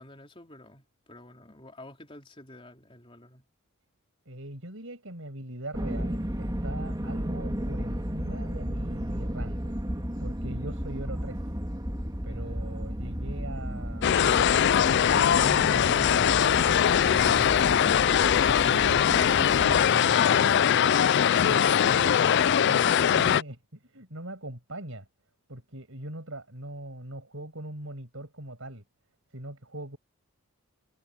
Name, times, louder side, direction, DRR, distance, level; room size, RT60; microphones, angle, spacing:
voice 1, 0.0-3.5 12.3-12.6, left 1 dB, 25° left, 4.0 m, -50 dB
voice 2, 4.2-9.7 10.2-11.5 12.2-14.4 14.9-17.9 18.4-20.9 21.5-22.2 22.6-25.1 25.5-28.8 29.3-30.0, right 1 dB, 60° right, 6.9 m, -40 dB
sound 1, 5.7-19.9, equal, 20° right, 2.3 m, -34 dB
sound 2, 14.0-23.4, left 8 dB, 50° left, 0.3 m, -21 dB
head